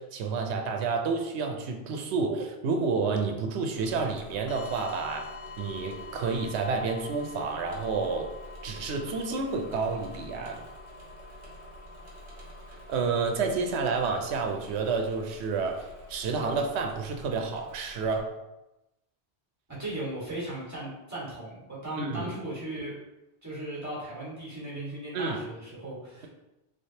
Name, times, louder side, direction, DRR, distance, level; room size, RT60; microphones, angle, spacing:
voice 1, 0.0-5.3 5.6-8.3 8.6-10.6 12.9-18.3 22.0-22.3 25.1-25.4, right 4 dB, 85° right, 3 dB, 0.8 m, -30 dB
Engine / Mechanisms, 3.7-18.2, right 1 dB, 55° right, 1.1 m, -48 dB
sound 1, 4.5-14.1, left 5 dB, 70° left, 1.1 m, -47 dB
voice 2, 19.8-23.0 23.4-26.3, right 1 dB, 15° right, -7 dB, 1.4 m, -37 dB
3.6 x 3.4 x 2.7 m, 0.95 s
omnidirectional pair, 1.1 m